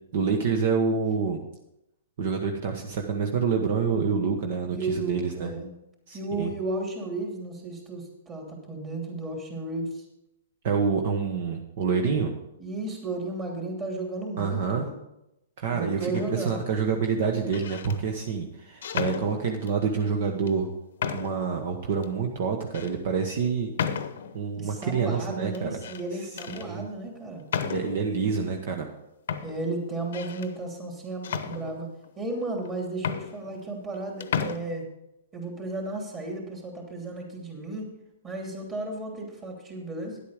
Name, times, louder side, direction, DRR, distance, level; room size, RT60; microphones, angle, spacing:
voice 1, 0.1-1.4 2.2-5.5 6.1-6.5 10.6-12.3 14.4-14.9 15.6-20.7 21.1-23.7 24.3-25.8 26.5-26.9 27.6-28.9, right 5 dB, 55° right, 3 dB, 1.2 m, -27 dB
voice 2, 4.7-5.7 6.1-10.0 12.6-15.0 15.7-16.6 24.6-27.4 29.4-31.9 32.2-34.8 35.3-37.9 38.2-40.2, right 2 dB, 20° right, 0 dB, 3.0 m, -34 dB
sound 1, 16.1-16.6 17.4-18.0 18.8-19.8 20.5-20.6 21.0-21.5 22.0-22.1 22.7-22.9 23.8-24.4 25.5-26.0 26.4-26.7 27.5-28.1 28.9-29.0 29.3-30.5 31.2-32.1 32.7-32.8 33.0-34.0 34.2-34.6, left 7 dB, 70° left, 0.8 m, -33 dB
10.5 x 8.3 x 5.0 m, 0.87 s
hypercardioid pair, 135°, 0 cm